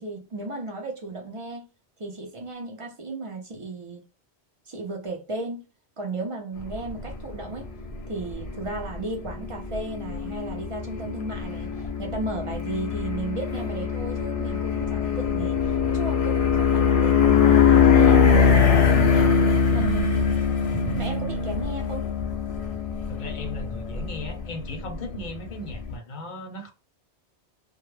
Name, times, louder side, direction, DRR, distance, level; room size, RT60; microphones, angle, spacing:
voice 1, 0.0-1.7 2.0-4.1 4.7-5.6 6.0-7.7 8.1-19.4 19.7-20.4 21.0-22.1, right 2 dB, 40° right, 0.5 m, -35 dB
sound 1, 6.6-25.9, left 6 dB, 70° left, 0.3 m, -23 dB
voice 2, 23.1-26.7, left 1 dB, 50° left, 0.7 m, -37 dB
2.2 x 2.0 x 3.1 m
omnidirectional pair, 1.1 m